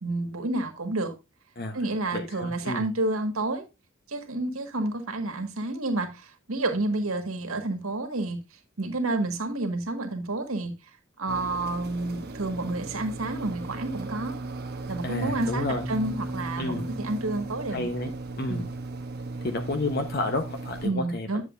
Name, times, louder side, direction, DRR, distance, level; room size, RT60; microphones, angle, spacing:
voice 1, 0.0-1.1 1.7-3.6 4.1-8.4 8.8-10.7 11.2-14.4 14.9-18.1 18.5-18.7 20.8-21.4, right 2 dB, 80° right, 1.7 m, -30 dB
voice 2, 2.1-2.9 15.0-15.8 16.6-16.9 17.7-18.1 18.4-18.7 19.4-21.4, left 2 dB, 45° left, 0.9 m, -31 dB
sound 1, 11.3-20.9, right 2 dB, 50° right, 0.9 m, -36 dB
10.0 x 7.5 x 2.6 m
head